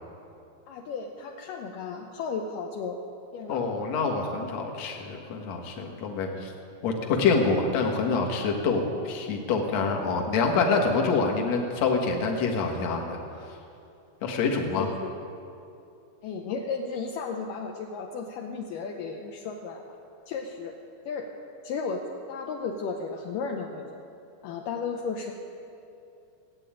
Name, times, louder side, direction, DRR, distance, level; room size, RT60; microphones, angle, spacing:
voice 1, 0.7-3.0 3.3-3.6 14.7-15.1 16.2-19.9 20.3-20.7 21.1-21.3 21.6-23.8 24.4-25.4, left 5 dB, 80° left, 1 dB, 2.0 m, -34 dB
voice 2, 3.5-6.5 6.8-13.2 14.2-14.9, left 4 dB, 55° left, 1 dB, 2.0 m, -26 dB
16.0 x 8.8 x 8.9 m, 2.6 s
omnidirectional pair, 4.7 m